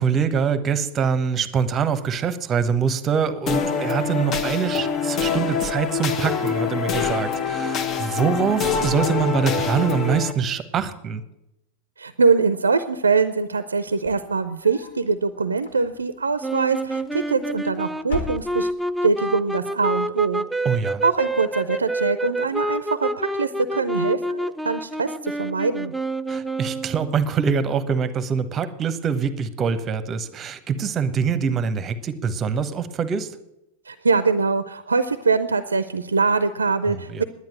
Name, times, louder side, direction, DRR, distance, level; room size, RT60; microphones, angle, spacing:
voice 1, 0.0-11.2 20.6-21.0 26.3-33.3 36.9-37.2, right 6 dB, 25° right, 13 dB, 1.0 m, -24 dB
sound 1, 3.5-10.3, left 6 dB, 30° left, 1.1 m, -25 dB
voice 2, 12.0-18.7 19.0-20.4 21.0-25.9 33.9-37.2, right 4 dB, 75° right, 12 dB, 0.6 m, -23 dB
sound 2, 13.9-15.0 15.5-16.2 17.2-17.7 18.0-18.9, left 2 dB, 70° left, 2.8 m, -36 dB
sound 3, 16.4-27.2, right 1 dB, ahead, 0.4 m, -28 dB
10.5 x 9.7 x 7.6 m, 0.87 s
figure-of-eight pair, 90°, 0 cm